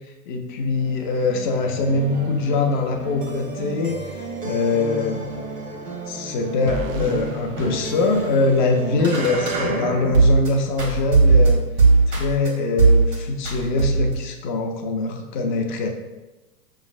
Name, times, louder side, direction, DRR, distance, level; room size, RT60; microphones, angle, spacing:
voice 1, 0.3-4.0 4.4-5.3 6.1-11.6 12.1-15.9, left 3 dB, 35° left, 4 dB, 0.4 m, -23 dB
sound 1, 0.7-10.5 10.8-12.5 12.8-13.2 13.4-14.2, right 3 dB, 80° right, 1.3 m, -22 dB
sound 2, 6.7-8.8, right 5 dB, 60° right, 0.5 m, -34 dB
5.5 x 3.1 x 2.4 m, 1.1 s
figure-of-eight pair, 105°, 47 cm